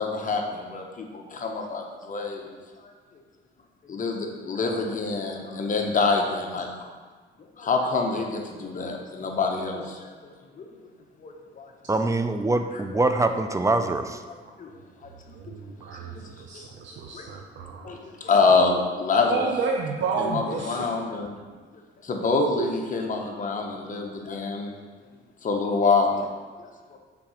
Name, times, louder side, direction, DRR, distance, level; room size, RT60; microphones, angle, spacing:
voice 1, 0.0-2.5 3.9-6.7 7.6-10.3 10.6-10.7 11.2-11.7 14.6-14.7 15.0-15.4 16.1-16.3 16.5-16.6 17.1-17.3 17.8-19.5 20.2-21.3 22.0-24.7 25.4-26.3 26.6-27.0, left 4 dB, 40° left, 2 dB, 1.0 m, -26 dB
voice 2, 11.9-14.2, right 2 dB, 15° right, 8 dB, 0.4 m, -24 dB
voice 3, 15.3-18.0 19.3-20.9 22.4-22.7, right 5 dB, 70° right, 1 dB, 0.6 m, -30 dB
5.9 x 3.8 x 4.9 m, 1.4 s
cardioid pair, 90°, 20 cm